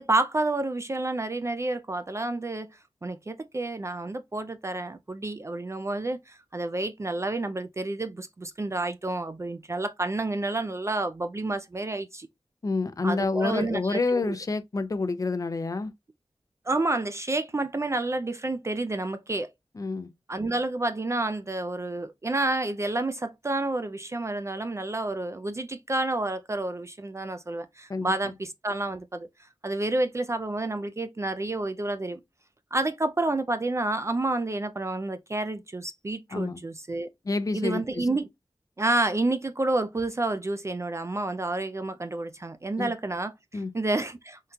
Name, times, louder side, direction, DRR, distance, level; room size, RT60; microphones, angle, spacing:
voice 1, 0.0-2.7 3.0-12.3 13.0-14.3 16.7-19.5 20.3-29.3 29.6-32.2 32.7-37.1 37.5-38.3 38.8-44.4, right 2 dB, 30° right, 0.4 m, -29 dB
voice 2, 12.6-15.9 19.8-20.1 27.9-28.1 36.3-36.6 37.2-38.1 42.8-42.9 43.5-43.7, left 3 dB, 40° left, 0.4 m, -28 dB
3.7 x 2.2 x 2.6 m
wide cardioid pair, 50°, 9 cm